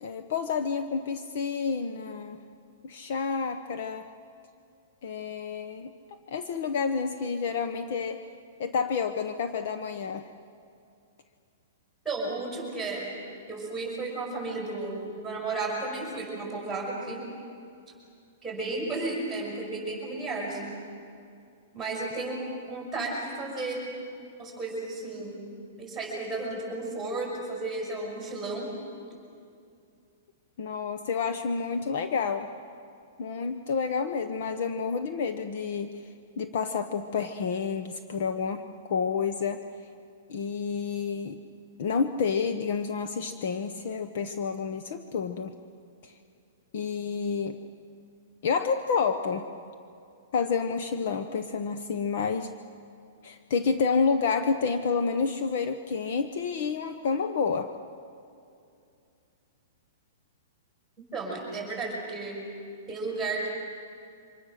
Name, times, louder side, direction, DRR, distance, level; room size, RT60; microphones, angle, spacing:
voice 1, 0.0-2.4 2.8-4.0 5.0-5.9 6.3-8.2 8.6-10.3 30.6-32.5 33.2-35.9 36.4-39.6 40.3-41.4 41.8-45.5 46.0-46.1 46.7-47.6 48.4-49.5 50.3-52.5 53.2-57.7, left 5 dB, 45° left, 8 dB, 1.0 m, -29 dB
voice 2, 12.0-13.1 13.5-17.3 18.4-20.8 21.7-23.9 24.4-25.4 25.8-28.7 61.1-62.4 62.9-63.5, right 3 dB, 5° right, -3 dB, 6.3 m, -33 dB
28.5 x 25.5 x 6.6 m, 2.5 s
hypercardioid pair, 175°, 0 cm